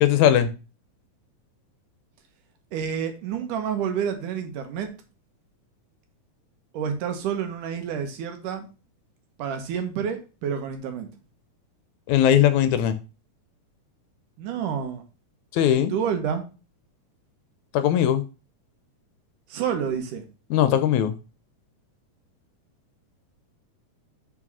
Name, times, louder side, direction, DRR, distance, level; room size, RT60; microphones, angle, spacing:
voice 1, 0.0-0.5 12.1-13.0 15.5-15.9 17.7-18.2 20.5-21.1, left 10 dB, 80° left, 11 dB, 1.9 m, -19 dB
voice 2, 2.7-4.9 6.7-8.7 9.4-11.1 14.4-15.0 15.7-16.4 19.5-20.2, right 7 dB, 85° right, 6 dB, 2.8 m, -29 dB
5.8 x 4.9 x 5.4 m, 0.31 s
omnidirectional pair, 3.6 m